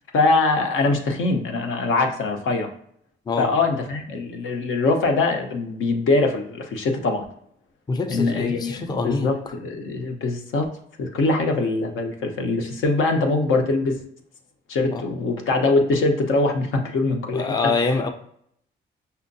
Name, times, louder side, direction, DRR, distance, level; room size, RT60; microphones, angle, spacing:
voice 1, 0.1-2.7 3.4-7.2 8.1-10.7 11.0-14.0 14.7-17.5, left 3 dB, 75° left, 3 dB, 0.7 m, -22 dB
voice 2, 7.9-9.3 14.9-15.0 17.3-18.1, left 3 dB, 20° left, 6 dB, 0.4 m, -25 dB
5.4 x 2.2 x 2.6 m, 0.68 s
cardioid pair, 70°, 21 cm